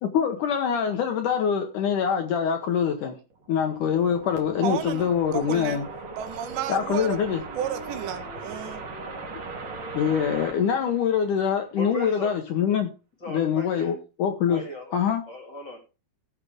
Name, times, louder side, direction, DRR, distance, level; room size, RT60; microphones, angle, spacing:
voice 1, 0.0-3.2 3.5-5.9 6.7-7.4 9.9-12.9 13.3-14.6 14.9-15.2, left 7 dB, 75° left, 1.9 m, -24 dB
sound 1, 3.3-11.7, right 4 dB, 40° right, 3.3 m, -39 dB
voice 2, 4.6-5.8 6.2-7.2 7.5-8.8, right 9 dB, 80° right, 3.4 m, -32 dB
voice 3, 11.7-12.3 13.2-13.9 14.5-14.9 15.3-15.8, equal, 30° left, 2.2 m, -37 dB
17.5 x 6.7 x 3.5 m
omnidirectional pair, 5.1 m